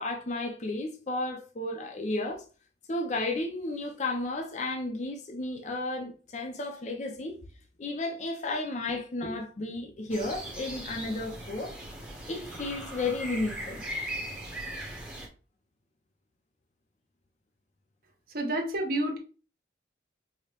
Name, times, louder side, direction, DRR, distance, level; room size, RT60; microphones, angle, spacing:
voice 1, 0.0-2.4 2.9-7.4 7.8-11.7 12.3-13.8, left 2 dB, 40° left, 0.5 m, -33 dB
sound 1, 10.1-15.3, right 1 dB, 5° right, 0.7 m, -39 dB
voice 2, 18.3-19.2, right 1 dB, 50° right, 0.8 m, -29 dB
4.8 x 2.1 x 2.9 m
head